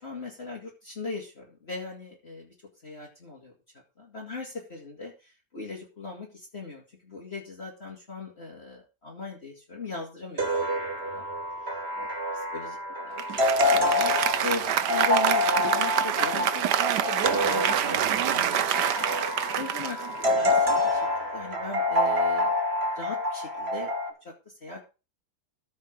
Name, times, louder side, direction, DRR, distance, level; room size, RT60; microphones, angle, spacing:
voice 1, 0.0-2.5 2.8-3.5 4.0-10.7 11.1-11.3 12.0-13.2 13.7-22.5 22.9-23.9 24.2-24.3 24.6-24.8, left 3 dB, 35° left, -3 dB, 2.8 m, -39 dB
sound 1, 10.4-24.1, left 1 dB, 35° right, 2.6 m, -27 dB
Applause, 13.2-20.8, right 10 dB, 75° right, 1.4 m, -27 dB
14.5 x 5.3 x 6.5 m, 0.31 s
omnidirectional pair, 1.9 m